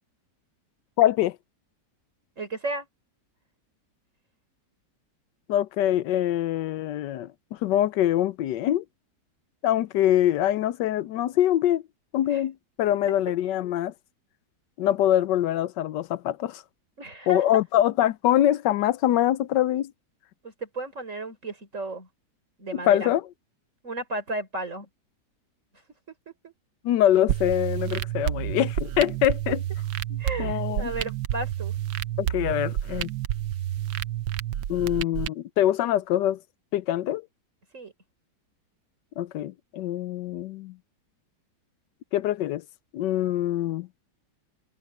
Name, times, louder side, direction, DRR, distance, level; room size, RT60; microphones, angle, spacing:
voice 1, 1.0-1.4 5.5-7.3 7.6-8.8 9.6-11.8 12.1-13.9 14.8-16.6 17.3-19.9 22.7-23.2 26.8-29.6 30.4-30.9 32.2-33.1 34.7-36.4 36.7-37.2 39.2-40.7 42.1-42.6 42.9-43.9, left 12 dB, 85° left, 1.3 m, -24 dB
voice 2, 2.4-2.9 12.3-12.4 12.8-12.9 17.0-17.6 20.4-22.1 22.6-23.1 23.8-24.9 26.4-26.5 30.2-31.8 37.7-37.9, right 2 dB, 45° right, 5.1 m, -34 dB
sound 1, 27.3-35.3, right 12 dB, 80° right, 1.4 m, -29 dB
omnidirectional pair, 1.9 m